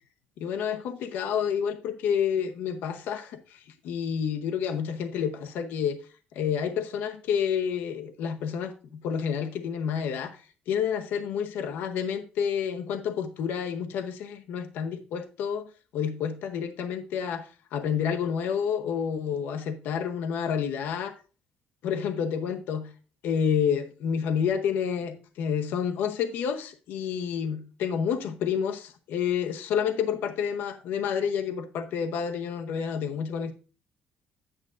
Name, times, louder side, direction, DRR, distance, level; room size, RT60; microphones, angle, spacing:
voice 1, 0.4-6.0 6.3-10.4 10.7-15.7 15.9-21.1 21.8-22.9 23.2-33.5, left 7 dB, 80° left, 0.8 m, -29 dB
9.7 x 8.7 x 2.5 m
cardioid pair, 140°, 3 cm